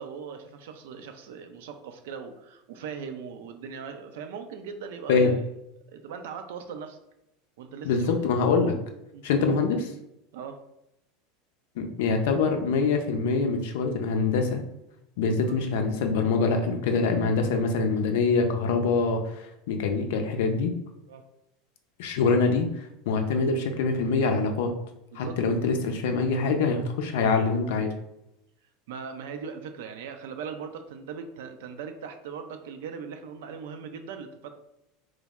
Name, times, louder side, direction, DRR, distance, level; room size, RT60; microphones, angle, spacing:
voice 1, 0.0-5.5 5.9-7.0 7.6-8.3 9.1-9.2 10.3-10.6 21.1-21.2 25.1-25.4 28.9-34.5, right 6 dB, 70° right, 7 dB, 0.4 m, -39 dB
voice 2, 7.8-8.8 9.2-9.9 11.8-14.6 15.2-20.7 22.0-24.7 25.2-27.9, left 4 dB, 65° left, 5 dB, 0.5 m, -24 dB
3.2 x 2.0 x 3.5 m, 0.84 s
hypercardioid pair, 80°, 0 cm